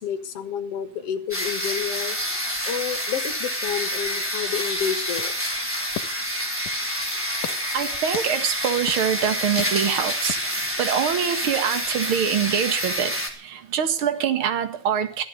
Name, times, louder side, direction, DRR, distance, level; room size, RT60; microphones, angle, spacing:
voice 1, 0.0-2.2 2.7-5.3, left 8 dB, 55° left, 9 dB, 2.2 m, -30 dB
sound 1, 1.3-13.3, equal, 5° right, 3.2 m, -28 dB
sound 2, 5.2-6.9 7.4-7.6 8.1-8.3 8.9-9.0 9.6-9.7 10.3-10.4, left 13 dB, 85° left, 2.5 m, -37 dB
voice 2, 7.7-15.2, right 8 dB, 45° right, 9 dB, 2.1 m, -25 dB
15.5 x 13.5 x 6.7 m, 0.42 s
omnidirectional pair, 3.8 m